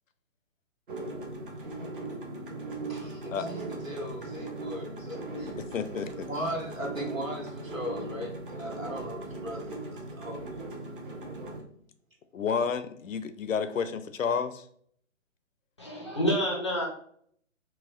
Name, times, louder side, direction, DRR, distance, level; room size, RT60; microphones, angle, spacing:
sound 1, 0.9-11.6, right 2 dB, 40° right, 0.6 m, -39 dB
voice 1, 2.9-5.5 6.3-10.7, equal, 85° right, -1 dB, 1.2 m, -38 dB
voice 2, 5.7-6.3 12.3-14.6, left 6 dB, 75° left, 10 dB, 0.5 m, -30 dB
voice 3, 15.8-16.9, equal, 25° left, -2 dB, 0.4 m, -28 dB
4.0 x 2.2 x 2.5 m, 0.62 s
figure-of-eight pair, 135°, 40 cm